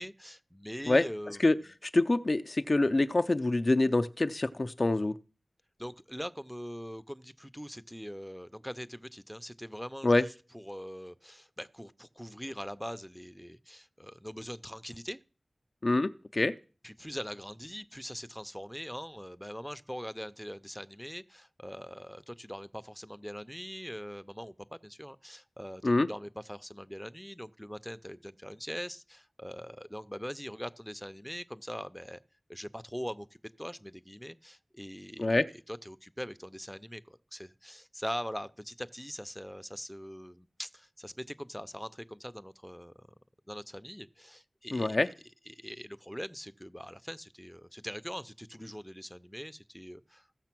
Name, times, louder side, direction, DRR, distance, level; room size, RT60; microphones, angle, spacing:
voice 1, 0.0-1.4 5.8-15.2 16.8-32.2 32.5-35.3 35.7-43.1 43.5-45.0 45.5-50.3, equal, ahead, 0.6 m, -42 dB
voice 2, 1.8-5.2 10.0-10.2 15.8-16.5 25.8-26.1 35.2-35.5 44.7-45.1, left 2 dB, 45° left, 0.5 m, -26 dB
15.0 x 6.6 x 6.0 m
wide cardioid pair, 75°, 0 cm